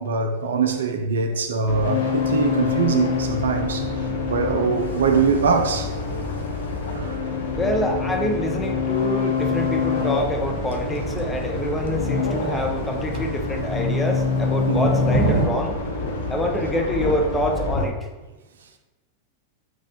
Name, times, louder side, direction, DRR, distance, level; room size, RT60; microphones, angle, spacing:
voice 1, 0.0-3.9 4.3-5.9 6.9-7.2 14.7-14.9, right 5 dB, 65° right, 0.4 m, -22 dB
sound 1, 1.7-17.8, left 4 dB, 60° left, 0.6 m, -26 dB
voice 2, 7.5-15.8 16.3-18.0, left 1 dB, 10° left, 0.6 m, -26 dB
Thunder / Rain, 9.4-15.5, right 3 dB, 45° right, 0.9 m, -31 dB
4.1 x 2.3 x 4.2 m
figure-of-eight pair, 90°, 0 cm